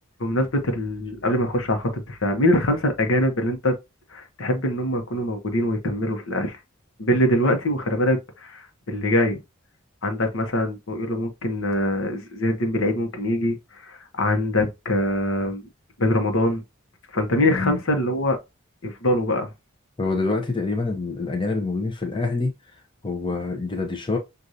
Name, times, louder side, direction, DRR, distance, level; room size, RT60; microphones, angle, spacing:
voice 1, 0.2-3.7 4.1-6.6 7.0-9.4 10.0-15.6 16.0-16.6 17.1-18.4 18.8-19.5, left 1 dB, 70° left, 1.0 m, -23 dB
voice 2, 17.4-17.8 20.0-22.5 23.0-24.2, left 3 dB, 25° left, 0.7 m, -26 dB
6.4 x 2.6 x 2.7 m
head